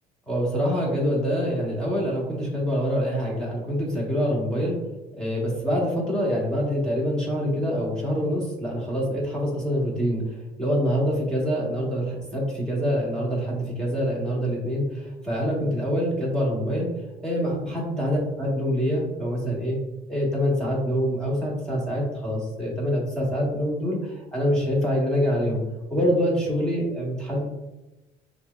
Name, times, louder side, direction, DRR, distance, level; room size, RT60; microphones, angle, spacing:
voice 1, 0.3-4.8 5.2-16.9 17.2-19.8 20.1-25.6 25.9-27.4, equal, 5° left, -4 dB, 1.4 m, -25 dB
6.0 x 2.1 x 2.3 m, 1.0 s
cardioid pair, 110°, 17 cm